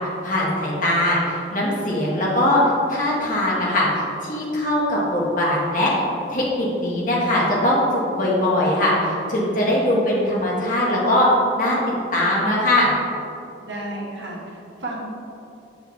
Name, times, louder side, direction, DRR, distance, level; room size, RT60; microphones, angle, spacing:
voice 1, 0.2-2.6 2.9-5.9 6.3-11.3 11.6-11.8 12.1-12.9, left 1 dB, 50° left, -4 dB, 1.4 m, -21 dB
voice 2, 13.7-15.0, right 1 dB, 75° right, -3 dB, 1.4 m, -32 dB
7.4 x 4.8 x 3.2 m, 2.8 s
head